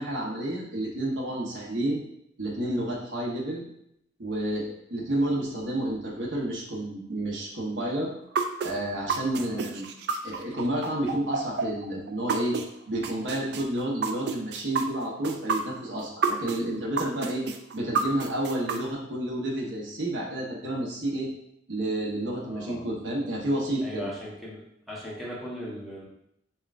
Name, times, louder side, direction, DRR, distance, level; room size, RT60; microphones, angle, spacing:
voice 1, 0.0-2.0 2.4-3.6 4.2-8.1 8.6-9.8 10.2-12.6 12.9-17.4 17.7-21.3 21.7-24.1, right 1 dB, 90° right, -3 dB, 0.9 m, -30 dB
sound 1, 8.3-12.6 13.0-16.6 17.0-18.8, right 5 dB, 65° right, 0.3 m, -29 dB
voice 2, 22.4-22.9 23.8-26.0, equal, ahead, -7 dB, 0.9 m, -39 dB
5.5 x 2.3 x 2.4 m, 0.76 s
head